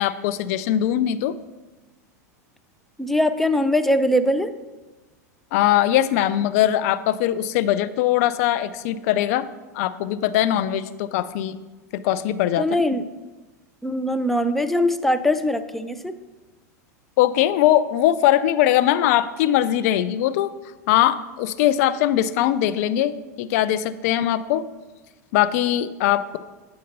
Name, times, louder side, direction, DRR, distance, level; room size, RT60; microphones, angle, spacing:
voice 1, 0.0-1.3 5.5-9.4 9.7-11.6 12.0-12.6 17.2-20.5 20.9-24.6 25.3-26.4, left 12 dB, 60° left, 13 dB, 0.4 m, -21 dB
voice 2, 3.0-4.6 12.6-13.0 13.8-16.2, left 1 dB, ahead, 9 dB, 0.5 m, -21 dB
7.9 x 3.8 x 5.2 m, 1.2 s
hypercardioid pair, 95°, 9 cm